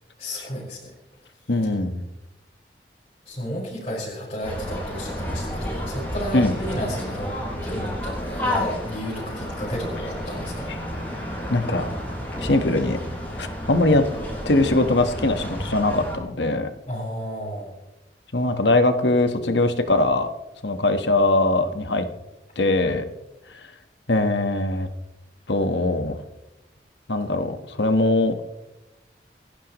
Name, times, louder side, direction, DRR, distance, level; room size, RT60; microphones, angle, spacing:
voice 1, 0.2-0.9 3.3-7.4 7.6-10.8 16.9-17.7, equal, 35° left, -8 dB, 5.4 m, -32 dB
voice 2, 1.5-2.0 6.3-6.5 10.7-10.8 11.5-11.8 12.4-13.0 13.4-14.1 14.4-16.7 18.3-20.3 20.6-22.0 22.6-23.0 24.1-24.9 25.5-26.2 27.1-28.3, left 2 dB, 80° left, 7 dB, 1.5 m, -21 dB
sound 1, 4.4-16.2, equal, 10° left, 6.9 m, -31 dB
27.0 x 11.5 x 3.2 m, 0.98 s
head